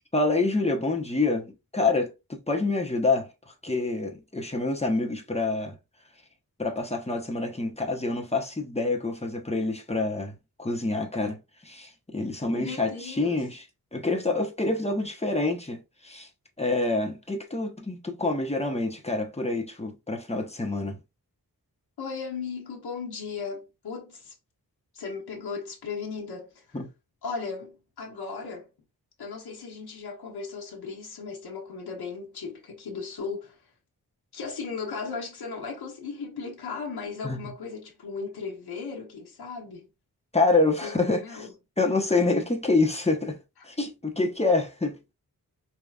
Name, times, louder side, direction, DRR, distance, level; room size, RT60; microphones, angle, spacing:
voice 1, 0.1-5.8 6.6-13.6 13.9-16.3 16.6-21.0 26.7-26.9 37.2-37.4 40.3-41.5 41.8-43.4 43.6-45.0, left 3 dB, 15° left, 1.0 m, -27 dB
voice 2, 12.5-13.4 22.0-24.3 24.9-26.6 27.2-28.7 29.2-33.6 34.3-39.9 40.8-41.5, left 5 dB, 85° left, 1.1 m, -36 dB
5.1 x 2.9 x 2.4 m
wide cardioid pair, 75°, 38 cm